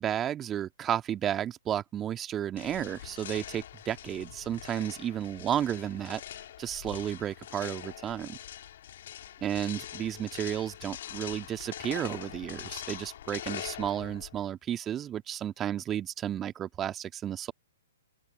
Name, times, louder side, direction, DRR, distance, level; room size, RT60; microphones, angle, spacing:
voice 1, 0.0-6.2 6.6-8.4 9.4-17.5, right 10 dB, 20° right, 2.0 m, -32 dB
sound 1, 2.6-14.5, left 11 dB, 55° left, 2.9 m, -43 dB
open air
figure-of-eight pair, 120°, 0 cm